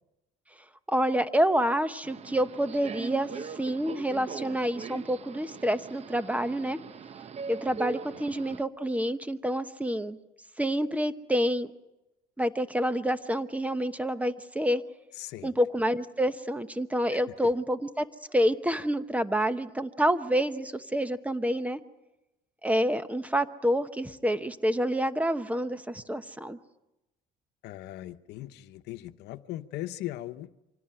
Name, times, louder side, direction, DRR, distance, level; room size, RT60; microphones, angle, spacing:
voice 1, 0.9-6.8 7.5-10.2 10.6-11.7 12.4-14.8 15.4-18.1 18.3-21.8 22.6-26.6, equal, 10° right, 12 dB, 1.0 m, -28 dB
Subway metro underground, 2.0-8.6, right 6 dB, 40° right, 0.8 m, -41 dB
voice 2, 15.2-15.5 17.1-17.5 27.6-30.5, left 15 dB, 85° left, 10 dB, 0.9 m, -39 dB
25.0 x 17.0 x 8.9 m, 0.97 s
cardioid pair, 110°, 17 cm